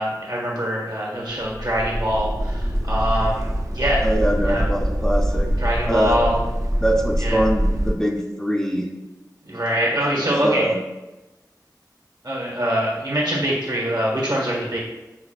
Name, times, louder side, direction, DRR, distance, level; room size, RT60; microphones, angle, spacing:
voice 1, 0.0-4.1 4.4-4.7 5.6-6.4 7.2-7.4 9.4-10.7 12.2-14.8, equal, 65° right, -3 dB, 1.3 m, -24 dB
sound 1, 1.4-7.9, equal, 45° right, 0.5 m, -24 dB
voice 2, 4.0-5.5 5.9-6.2 6.8-8.9 10.2-10.8, right 1 dB, 5° left, -1 dB, 0.5 m, -23 dB
5.9 x 2.6 x 2.3 m, 1.1 s
wide cardioid pair, 45°, 8 cm